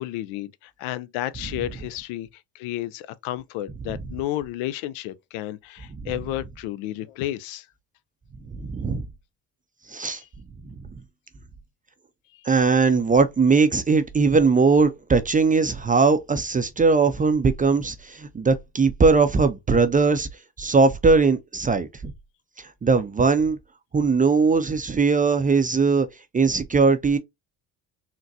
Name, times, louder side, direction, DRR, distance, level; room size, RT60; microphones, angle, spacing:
voice 1, 0.0-2.3 2.5-7.7 10.1-10.3, left 14 dB, 75° left, 0.5 m, -32 dB
voice 2, 8.5-9.0 9.9-10.2 12.4-20.3 20.6-22.1 22.6-23.6 23.9-26.1 26.3-27.2, right 4 dB, 20° right, 0.4 m, -20 dB
3.9 x 2.2 x 2.6 m
supercardioid pair, 65°, 48 cm